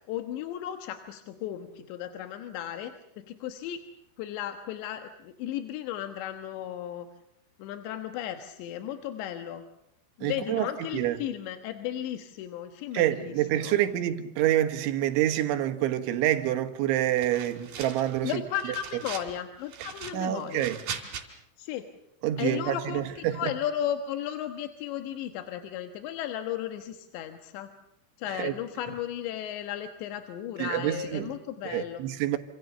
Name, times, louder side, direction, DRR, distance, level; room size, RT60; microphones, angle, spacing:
voice 1, 0.0-3.8 4.2-7.1 7.6-9.6 10.2-13.8 18.2-20.7 21.6-21.9 22.4-27.7 28.2-32.0, left 11 dB, 70° left, 3.2 m, -35 dB
voice 2, 10.2-10.7 10.9-11.2 12.9-18.4 20.1-20.8 22.2-23.5 28.3-28.5 30.6-31.3 31.6-32.4, right 13 dB, 70° right, 3.6 m, -27 dB
sound 1, 17.2-18.2 18.5-19.3 19.7-21.2, right 7 dB, 50° right, 4.1 m, -39 dB
28.0 x 27.0 x 6.8 m
omnidirectional pair, 5.9 m